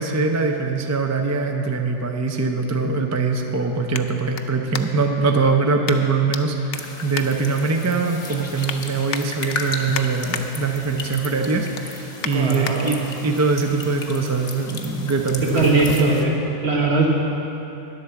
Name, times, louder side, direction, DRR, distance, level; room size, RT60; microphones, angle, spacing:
voice 1, 0.0-15.7, right 4 dB, 25° right, 4 dB, 0.3 m, -22 dB
sound 1, 1.1-5.2 5.8-6.4 6.7-8.0 8.4-8.8 9.1-10.4 10.9-11.1 11.5-12.8 13.3-13.4, left 8 dB, 60° left, 0.7 m, -34 dB
sound 2, 6.7-16.2, left 3 dB, 35° left, 0.9 m, -34 dB
voice 2, 12.3-12.9 15.5-16.4 16.6-17.1, right 3 dB, 55° right, -2 dB, 1.8 m, -19 dB
10.0 x 8.2 x 7.0 m, 3.0 s
omnidirectional pair, 1.3 m